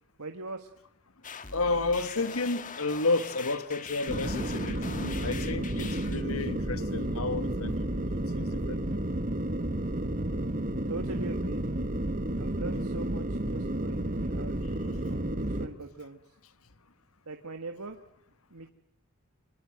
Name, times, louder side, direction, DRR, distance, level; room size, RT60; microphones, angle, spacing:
voice 1, 0.2-0.7 10.9-11.6 12.4-16.2 17.3-18.0 18.5-18.7, right 3 dB, 90° right, 1.8 m, -41 dB
sound 1, 1.2-6.2, left 5 dB, 40° left, 1.6 m, -42 dB
voice 2, 1.5-7.7 8.3-8.8, left 3 dB, 75° left, 1.6 m, -31 dB
sound 2, 4.1-15.7, right 1 dB, 40° right, 1.7 m, -31 dB
26.5 x 21.5 x 7.8 m
head